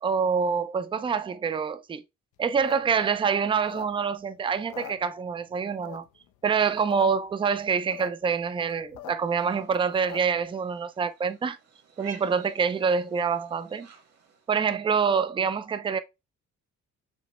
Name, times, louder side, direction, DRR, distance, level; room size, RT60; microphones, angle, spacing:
voice 1, 0.0-2.0 2.4-6.1 6.4-11.6 12.0-13.9 14.5-16.0, right 6 dB, 20° right, 0.3 m, -26 dB
sound 1, 2.4-4.3 4.6-5.5 5.8-6.3 6.7-7.1 7.3-7.4 7.6-8.1 8.4-10.4, left 10 dB, 90° left, 0.5 m, -43 dB
sound 2, 9.2-14.5, right 7 dB, 55° right, 1.4 m, -53 dB
5.1 x 2.0 x 2.9 m
cardioid pair, 90°, 30 cm